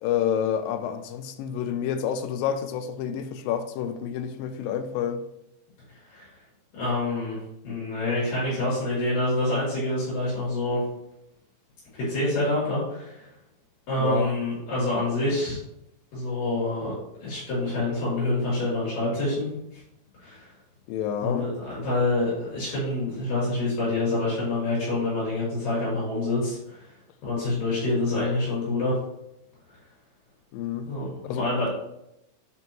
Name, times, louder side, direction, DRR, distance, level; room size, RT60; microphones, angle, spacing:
voice 1, 0.0-5.2 14.0-14.3 20.9-21.4 30.5-30.9 31.3-31.5, left 9 dB, 80° left, 2.3 m, -28 dB
voice 2, 6.7-10.8 11.9-13.3 13.9-15.6 16.1-16.9 17.2-19.5 19.7-19.8 20.2-20.5 21.2-26.9 27.2-29.0 30.9-31.7, left 2 dB, 65° left, 4.7 m, -27 dB
9.3 x 5.3 x 3.0 m
omnidirectional pair, 4.2 m